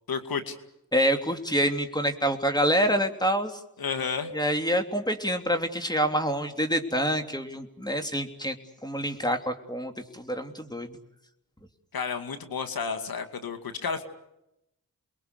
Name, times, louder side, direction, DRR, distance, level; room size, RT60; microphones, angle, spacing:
voice 1, 0.1-0.6 3.8-4.3 11.9-14.0, left 5 dB, 75° left, 8 dB, 2.5 m, -31 dB
voice 2, 0.9-3.5 4.3-8.6 8.8-11.0, equal, 10° left, 6 dB, 3.1 m, -26 dB
29.5 x 22.0 x 6.8 m, 0.86 s
cardioid pair, 50°, 36 cm